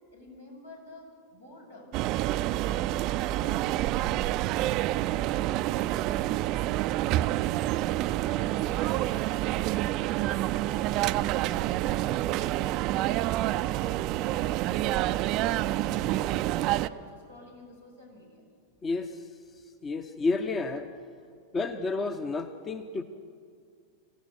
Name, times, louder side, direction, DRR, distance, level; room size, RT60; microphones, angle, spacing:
voice 1, 0.1-1.9 2.4-4.8 5.2-9.5 10.0-10.9 11.3-13.9 14.2-15.0 15.4-18.4, left 1 dB, 85° left, -3 dB, 7.1 m, -50 dB
sound 1, 1.9-16.9, right 15 dB, 40° right, 0.5 m, -28 dB
voice 2, 18.8-19.2 19.8-20.9 21.5-23.0, left 3 dB, 20° left, 9 dB, 1.0 m, -30 dB
25.5 x 16.0 x 6.8 m, 2.2 s
figure-of-eight pair, 90°, 0 cm